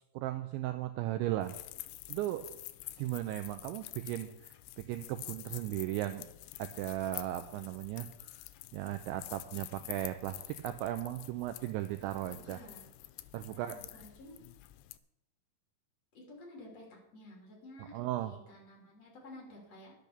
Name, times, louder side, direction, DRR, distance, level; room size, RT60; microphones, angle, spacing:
voice 1, 0.1-1.6 2.1-2.4 3.0-6.3 6.6-8.1 8.3-8.4 8.7-12.6 13.3-13.8 17.9-18.3, right 14 dB, 85° right, 9 dB, 2.6 m, -36 dB
sound 1, 1.4-15.0, left 17 dB, 90° left, 3.2 m, -48 dB
voice 2, 12.3-12.9 13.5-13.6 14.0-14.4 16.1-16.9 17.1-19.9, left 1 dB, 35° left, -1 dB, 3.6 m, -52 dB
10.5 x 8.4 x 6.7 m, 0.84 s
omnidirectional pair, 5.8 m